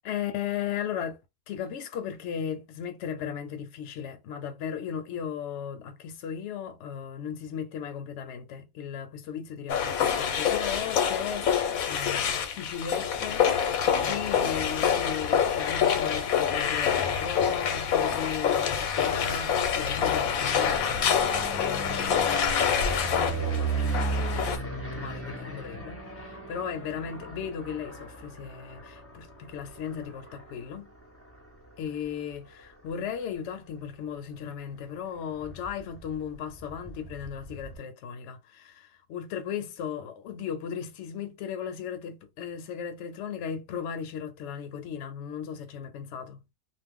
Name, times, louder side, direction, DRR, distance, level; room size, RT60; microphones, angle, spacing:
voice 1, 0.0-1.2 1.5-30.9 31.8-46.4, left 8 dB, 65° left, 0.8 m, -36 dB
sound 1, 9.7-24.6, left 7 dB, 90° left, 1.0 m, -26 dB
sound 2, 19.2-33.1 33.6-34.1 34.3-34.4 34.7-34.8 35.0-37.8, right 3 dB, 15° left, 0.4 m, -37 dB
2.4 x 2.1 x 3.5 m
omnidirectional pair, 1.4 m